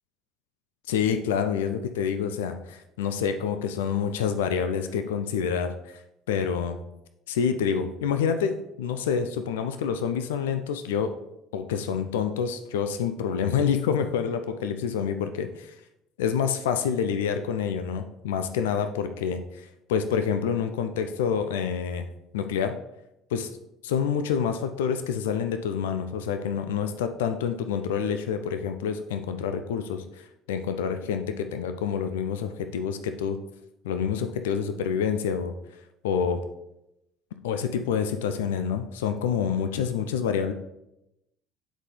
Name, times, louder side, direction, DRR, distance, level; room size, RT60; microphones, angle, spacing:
voice 1, 0.9-5.8 6.3-6.8 7.3-11.1 11.5-15.5 16.2-22.1 22.3-22.7 23.3-23.5 23.8-33.4 33.8-35.5 36.0-36.5 37.4-40.5, left 7 dB, 75° left, 8 dB, 0.4 m, -27 dB
8.1 x 4.0 x 3.2 m, 0.86 s
hypercardioid pair, 60°, 0 cm